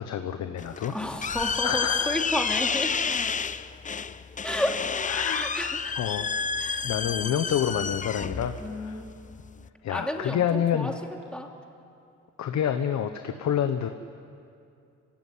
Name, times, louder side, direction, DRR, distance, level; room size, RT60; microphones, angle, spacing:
voice 1, 0.0-0.9 1.3-2.1 5.1-5.5 5.9-6.3 6.8-9.0 9.8-10.9 12.4-13.9, left 9 dB, 65° left, 8 dB, 1.1 m, -28 dB
sound 1, 0.6-9.7, left 5 dB, 25° left, 0.6 m, -30 dB
voice 2, 0.9-3.0 4.4-4.8 5.3-5.9 6.6-6.9 8.6-9.2 9.9-10.9 11.3-11.5, left 1 dB, 5° left, 2 dB, 2.7 m, -32 dB
26.0 x 16.0 x 9.6 m, 2.5 s
cardioid pair, 90°, 30 cm